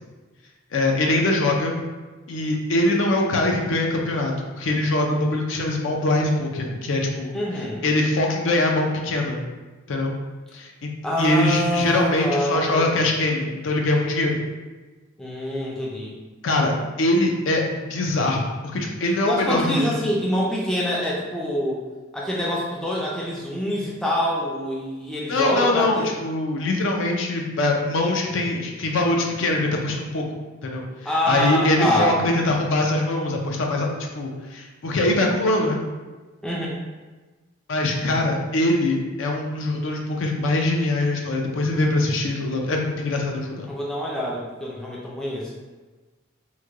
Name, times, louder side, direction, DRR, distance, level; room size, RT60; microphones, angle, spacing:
voice 1, 0.7-1.8 2.3-7.3 7.8-9.5 9.9-10.1 10.5-10.9 11.2-14.4 16.4-20.0 25.3-30.4 30.6-33.9 34.1-35.8 37.7-43.7, left 2 dB, 60° left, 1 dB, 0.5 m, -23 dB
voice 2, 7.3-7.9 11.0-12.9 15.2-16.2 19.3-21.8 22.1-26.1 31.0-32.2 36.4-36.8 43.7-45.5, equal, 5° left, -5 dB, 0.4 m, -25 dB
3.1 x 2.2 x 3.5 m, 1.3 s
head